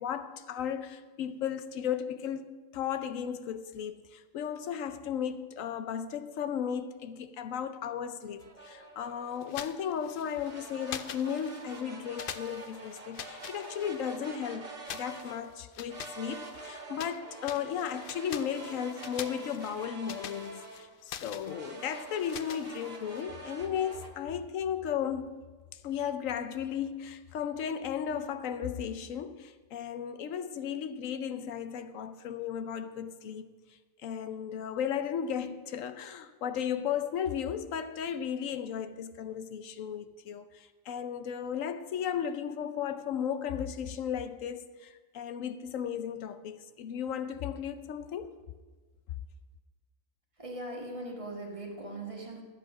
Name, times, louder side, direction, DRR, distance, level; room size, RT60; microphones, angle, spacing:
voice 1, 0.0-25.3 25.7-33.5 34.0-48.3, left 8 dB, 80° left, 1.0 m, -35 dB
sound 1, 8.4-9.6 10.3-15.4 15.9-20.9 21.4-24.1, right 2 dB, 50° right, 1.7 m, -46 dB
sound 2, 9.4-10.5 10.9-11.8 12.2-14.3 14.8-17.2 17.4-23.2, left 9 dB, 60° left, 0.6 m, -45 dB
voice 2, 50.4-52.4, right 2 dB, 25° right, 1.5 m, -40 dB
12.0 x 8.3 x 6.0 m
omnidirectional pair, 1.3 m